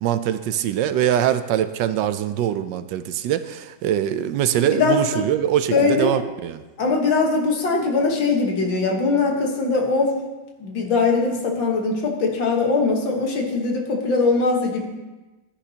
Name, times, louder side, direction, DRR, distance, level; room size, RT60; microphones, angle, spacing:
voice 1, 0.0-6.6, right 10 dB, 75° right, 11 dB, 1.2 m, -23 dB
voice 2, 4.8-5.3 5.7-6.2 6.8-10.2 10.6-14.9, left 3 dB, 85° left, 1 dB, 2.2 m, -21 dB
15.0 x 10.0 x 2.9 m, 1.1 s
omnidirectional pair, 2.0 m